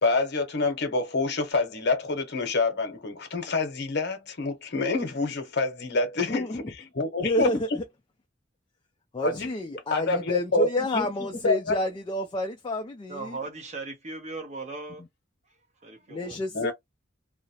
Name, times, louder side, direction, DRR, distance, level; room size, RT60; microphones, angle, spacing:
voice 1, 0.0-6.7 6.9-7.5 9.2-9.5 9.9-11.8 16.5-16.7, left 3 dB, 55° left, 0.8 m, -27 dB
voice 2, 6.3-6.7 7.2-7.8 9.1-13.4 16.1-16.7, left 1 dB, 25° left, 0.3 m, -30 dB
voice 3, 13.1-15.0 15.8-16.4, right 3 dB, 35° right, 0.8 m, -38 dB
2.3 x 2.0 x 2.8 m
head